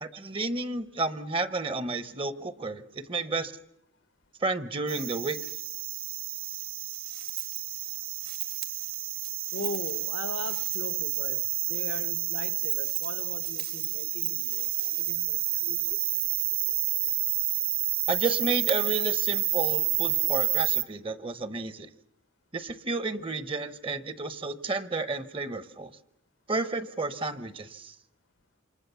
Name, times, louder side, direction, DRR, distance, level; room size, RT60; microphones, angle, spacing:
voice 1, 0.0-3.5 4.4-5.4 18.1-21.9 22.5-25.9 26.5-27.9, right 3 dB, 25° right, 0.9 m, -31 dB
sound 1, 4.9-20.8, right 13 dB, 50° right, 1.3 m, -29 dB
voice 2, 9.5-16.0, left 3 dB, 75° left, 1.1 m, -40 dB
28.0 x 25.0 x 6.9 m
head